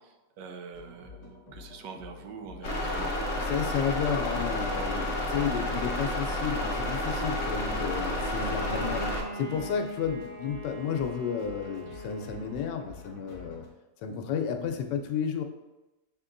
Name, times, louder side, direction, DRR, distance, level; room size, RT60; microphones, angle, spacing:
voice 1, 0.0-3.2, right 5 dB, 80° right, 5 dB, 1.2 m, -44 dB
sound 1, 0.7-13.7, left 4 dB, 25° left, 0.8 m, -49 dB
sound 2, 2.6-9.2, left 1 dB, 55° left, 0.8 m, -30 dB
voice 2, 3.5-13.7 14.0-15.4, left 7 dB, 85° left, 5 dB, 1.2 m, -32 dB
Bowed string instrument, 8.1-12.8, equal, 45° right, 1.0 m, -41 dB
6.8 x 2.9 x 2.5 m, 1.0 s
omnidirectional pair, 1.8 m